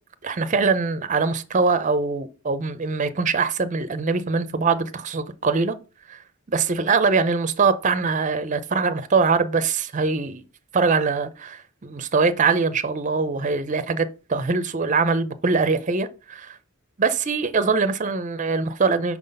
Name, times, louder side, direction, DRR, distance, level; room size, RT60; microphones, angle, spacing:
voice 1, 0.2-5.8 6.1-6.2 6.5-10.4 10.7-16.6 17.0-19.2, right 4 dB, 35° right, 0.5 m, -23 dB
5.9 x 4.0 x 5.3 m
head